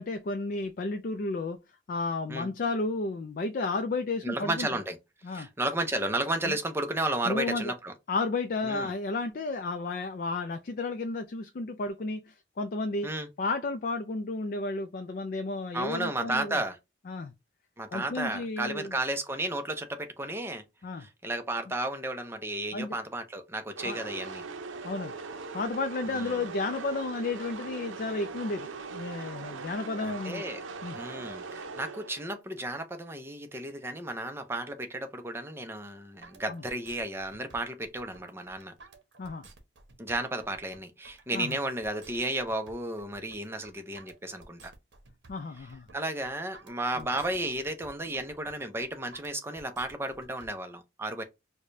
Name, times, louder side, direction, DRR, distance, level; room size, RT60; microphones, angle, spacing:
voice 1, 0.0-1.6 1.9-4.7 5.2-5.5 6.4-6.6 7.3-7.7 8.1-13.1 13.4-16.6 17.1-17.3 17.9-18.9 20.8-21.1 22.7-22.9 23.8-24.0 24.8-25.1 25.5-30.4 30.8-31.0 36.5-36.6 39.2-39.5 41.3-41.6 45.3-45.9 47.0-47.1, left 3 dB, 45° left, 0.4 m, -32 dB
voice 2, 4.2-5.0 5.3-7.9 8.6-8.9 13.0-13.3 15.7-16.8 17.8-20.6 21.0-24.4 26.1-26.4 30.0-30.6 30.9-38.7 40.0-44.7 45.6-45.7 45.9-51.2, right 1 dB, 10° right, 0.5 m, -33 dB
sound 1, 23.8-32.4, right 4 dB, 80° right, 0.6 m, -40 dB
sound 2, 36.2-50.5, right 2 dB, 60° right, 0.9 m, -54 dB
4.8 x 2.2 x 2.5 m
head